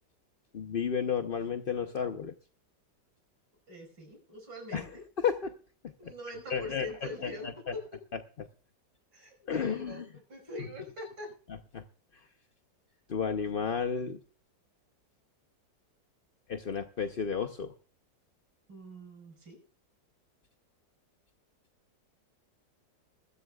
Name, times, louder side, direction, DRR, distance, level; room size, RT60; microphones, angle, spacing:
voice 1, 0.5-2.3 4.7-4.9 5.2-5.5 6.0-6.1 6.5-7.7 8.4-8.5 9.5-10.0 11.7-11.8 13.1-14.2 16.5-17.7, left 6 dB, 50° left, 6 dB, 0.6 m, -32 dB
voice 2, 3.7-5.0 6.0-8.0 9.1-11.3 18.7-19.6, left 1 dB, 90° right, 2 dB, 6.1 m, -44 dB
21.0 x 14.5 x 2.4 m, 0.41 s
omnidirectional pair, 2.0 m